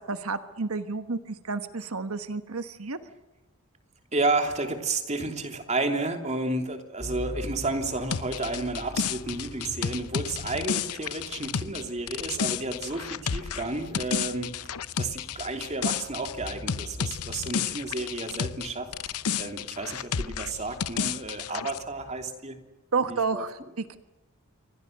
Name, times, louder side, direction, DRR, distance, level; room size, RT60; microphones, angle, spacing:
voice 1, 0.0-3.0 22.9-24.0, right 4 dB, 75° right, 10 dB, 1.3 m, -31 dB
voice 2, 4.1-14.5 15.0-22.6 23.0-23.4, right 2 dB, 30° right, 5 dB, 3.0 m, -31 dB
sound 1, 7.0-22.3, equal, 50° left, 5.6 m, -45 dB
sound 2, 8.1-18.7 18.9-21.8, left 7 dB, 85° left, 0.8 m, -31 dB
28.5 x 24.5 x 6.7 m, 1.1 s
head